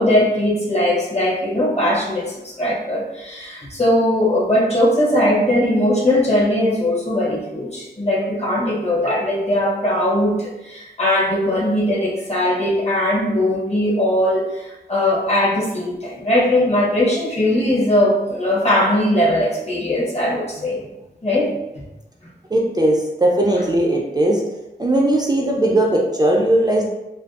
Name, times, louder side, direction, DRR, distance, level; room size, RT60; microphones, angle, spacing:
voice 1, 0.0-20.8 21.2-21.5, left 1 dB, 40° left, -5 dB, 0.8 m, -19 dB
voice 2, 22.5-24.4 24.8-26.9, right 1 dB, 25° right, -2 dB, 0.3 m, -18 dB
2.5 x 2.2 x 2.3 m, 0.97 s
wide cardioid pair, 60°, 18 cm